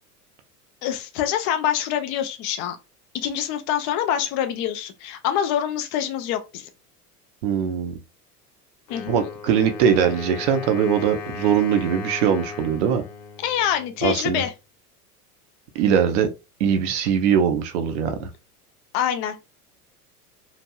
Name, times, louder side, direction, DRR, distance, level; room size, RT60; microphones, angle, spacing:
voice 1, 0.8-2.8 3.1-6.7 8.9-9.3 13.4-14.5 18.9-19.4, left 10 dB, 30° left, 0.4 m, -25 dB
voice 2, 7.4-8.0 9.1-13.0 14.0-14.4 15.7-16.3 16.6-18.3, right 8 dB, 50° right, 0.7 m, -21 dB
Wind instrument woodwind instrument, 8.9-14.5, left 6 dB, 50° left, 1.1 m, -37 dB
3.0 x 2.6 x 2.2 m
figure-of-eight pair, 80°, 46 cm